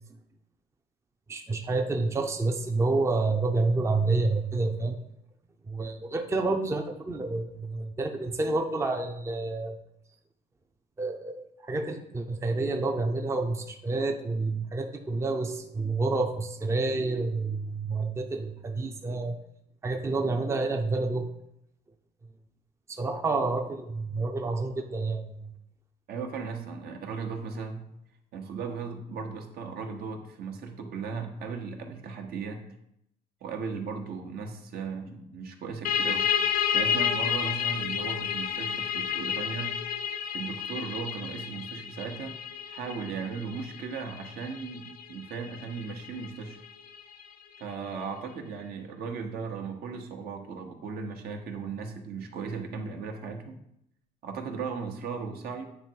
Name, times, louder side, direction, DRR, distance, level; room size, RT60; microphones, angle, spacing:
voice 1, 1.3-5.0 5.7-9.8 11.0-19.4 19.8-21.3 22.9-25.5, right 3 dB, 15° right, 4 dB, 0.6 m, -29 dB
voice 2, 26.1-27.8 28.3-32.7 33.4-36.3 36.7-39.7 40.3-42.4 42.7-46.6 47.6-53.6 54.2-55.7, right 5 dB, 65° right, 4 dB, 1.0 m, -37 dB
sound 1, 35.8-47.2, left 8 dB, 55° left, 0.5 m, -31 dB
8.8 x 3.1 x 4.5 m, 0.78 s
cardioid pair, 110°, 17 cm